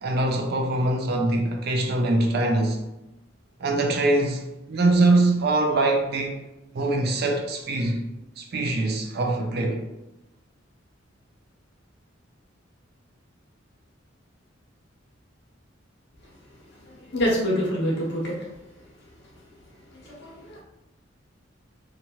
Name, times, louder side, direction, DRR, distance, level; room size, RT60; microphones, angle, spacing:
voice 1, 0.0-2.8 3.6-4.4 4.7-6.4 6.7-8.1 8.4-9.8, right 2 dB, 55° right, 0.5 m, -23 dB
voice 2, 16.8-18.4 19.9-20.6, equal, 60° left, 0.9 m, -26 dB
2.9 x 2.4 x 2.8 m
head